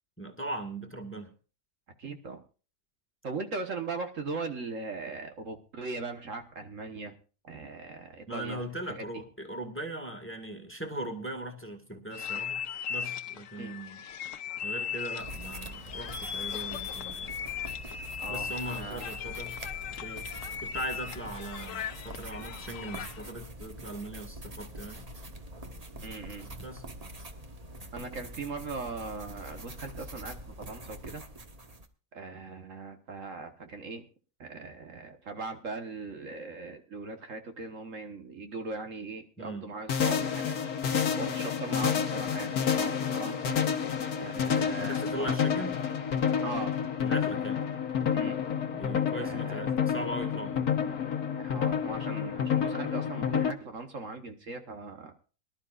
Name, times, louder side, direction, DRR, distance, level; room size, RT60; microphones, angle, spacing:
voice 1, 0.2-1.3 8.3-12.6 12.9-14.0 14.6-17.3 18.3-20.3 20.6-25.1 26.6-26.9 39.4-39.7 44.8-45.8 47.0-47.6 48.7-50.6, right 1 dB, 10° left, 4 dB, 1.8 m, -39 dB
voice 2, 2.0-2.4 3.2-7.1 7.4-9.2 13.6-13.7 18.2-19.1 26.0-26.5 27.9-31.2 32.1-34.1 34.4-40.5 41.2-43.6 44.1-45.3 46.4-46.8 48.1-48.4 49.2-49.6 51.4-55.2, right 3 dB, 60° right, 5 dB, 1.7 m, -39 dB
sound 1, 12.1-23.3, left 8 dB, 65° left, 1.2 m, -38 dB
sound 2, 15.2-31.9, right 1 dB, 25° right, 1.2 m, -44 dB
sound 3, 39.9-53.5, left 7 dB, 80° left, 1.5 m, -29 dB
23.5 x 12.0 x 2.5 m, 0.36 s
omnidirectional pair, 1.6 m